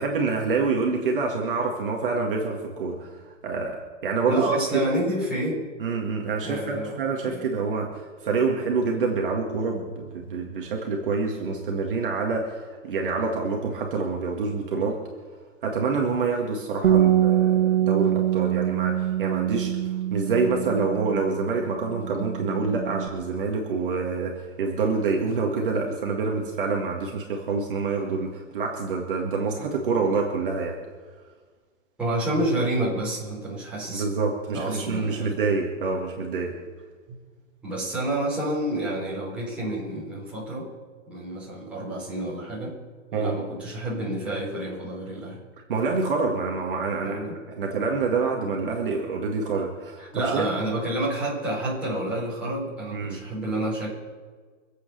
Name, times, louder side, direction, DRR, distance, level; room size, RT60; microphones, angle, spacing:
voice 1, 0.0-4.6 4.9-5.0 5.8-15.0 15.6-30.8 33.9-36.6 43.1-43.4 45.6-47.2 47.6-50.5 52.9-53.2, right 4 dB, 40° right, 0 dB, 1.9 m, -27 dB
voice 2, 4.3-5.6 6.4-7.0 7.2-7.5 32.0-34.0 34.5-35.3 37.6-40.7 41.1-42.7 43.1-45.4 47.0-47.4 50.0-53.9, right 1 dB, 5° right, -9 dB, 4.6 m, -29 dB
Bass guitar, 16.8-23.1, right 11 dB, 65° right, 1.4 m, -24 dB
24.5 x 8.3 x 6.7 m, 1.5 s
hypercardioid pair, 180°, 39 cm